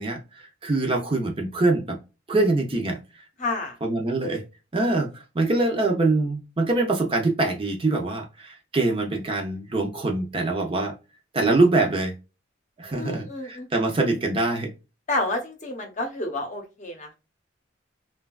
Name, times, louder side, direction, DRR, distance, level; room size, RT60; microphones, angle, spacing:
voice 1, 0.0-2.0 2.3-3.2 3.8-4.4 4.7-10.9 11.3-12.1 12.8-14.7, right 2 dB, 30° right, 0.6 m, -24 dB
voice 2, 3.4-3.8 12.9-13.7 15.1-17.1, left 2 dB, 40° left, 0.8 m, -30 dB
3.2 x 2.3 x 2.2 m
head